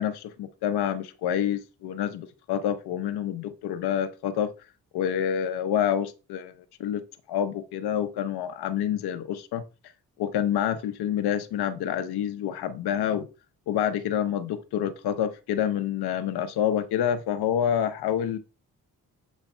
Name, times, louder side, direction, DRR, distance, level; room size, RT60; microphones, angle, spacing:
voice 1, 0.0-4.5 4.9-6.5 6.8-7.0 7.3-9.6 10.2-13.3 13.7-18.4, left 9 dB, 80° left, 0.8 m, -27 dB
7.2 x 3.3 x 4.4 m
cardioid pair, 65°, 38 cm